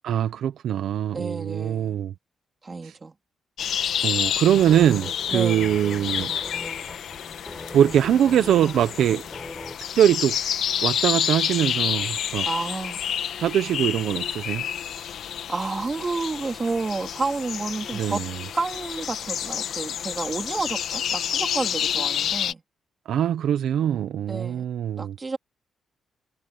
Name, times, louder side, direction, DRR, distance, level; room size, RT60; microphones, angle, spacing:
voice 1, 0.0-2.1 2.8-2.9 4.0-6.4 7.7-9.2 9.9-10.4 10.8-12.5 13.4-14.6 17.9-18.4 23.1-25.2, right 10 dB, 80° right, 1.0 m, -22 dB
voice 2, 1.1-2.0 2.6-3.1 5.3-5.7 12.5-13.0 15.5-18.2 18.5-22.6 24.3-24.6 25.0-25.4, right 3 dB, 25° right, 3.6 m, -30 dB
sound 1, 3.6-22.5, left 9 dB, 70° left, 1.2 m, -29 dB
sound 2, 4.6-9.8, left 2 dB, 10° left, 7.7 m, -40 dB
wide cardioid pair, 155°, 0 cm